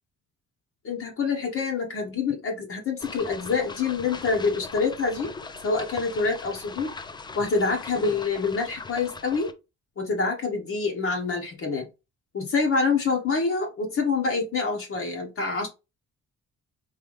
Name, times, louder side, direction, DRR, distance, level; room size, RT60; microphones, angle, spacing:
voice 1, 0.8-5.3 5.6-6.9 7.3-9.5 10.0-11.9 12.3-15.7, left 4 dB, 45° left, 1 dB, 1.1 m, -26 dB
sound 1, 3.0-9.5, left 4 dB, 15° left, 0.4 m, -40 dB
3.9 x 2.7 x 3.1 m, 0.27 s
cardioid pair, 90°, 30 cm